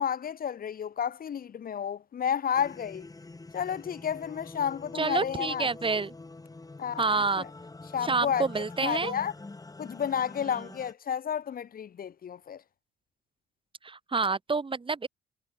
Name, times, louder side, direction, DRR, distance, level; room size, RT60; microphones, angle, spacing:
voice 1, 0.0-3.1 3.5-6.0 6.8-7.5 7.9-8.4 8.8-9.3 9.8-12.6, left 8 dB, 45° left, 1.4 m, -31 dB
sound 1, 2.5-10.9, left 3 dB, 20° left, 4.5 m, -45 dB
voice 2, 4.9-6.1 7.0-7.5 8.0-9.1 13.8-15.1, right 4 dB, 25° right, 2.5 m, -28 dB
supercardioid pair, 80°, 20 cm